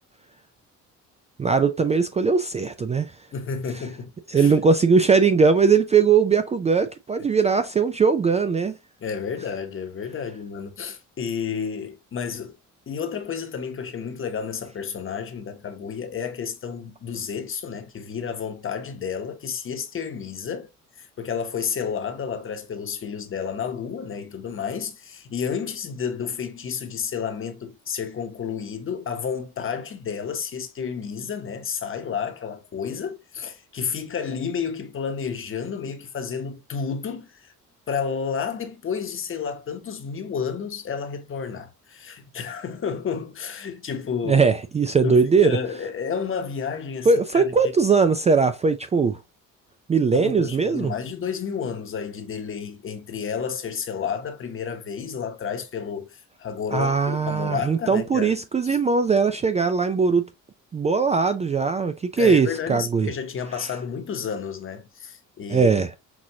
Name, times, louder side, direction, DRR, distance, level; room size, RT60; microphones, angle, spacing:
voice 1, 1.4-3.1 4.3-8.8 44.3-45.6 47.1-49.2 49.9-50.9 56.7-60.3 60.7-63.1 65.5-65.9, right 5 dB, 20° right, 0.3 m, -20 dB
voice 2, 3.3-4.6 9.0-12.5 12.9-20.7 21.0-37.5 37.9-44.4 45.0-47.7 50.1-58.4 58.6-58.8 62.2-65.7, left 6 dB, 40° left, 1.0 m, -31 dB
6.0 x 2.5 x 2.8 m
cardioid pair, 85°, 33 cm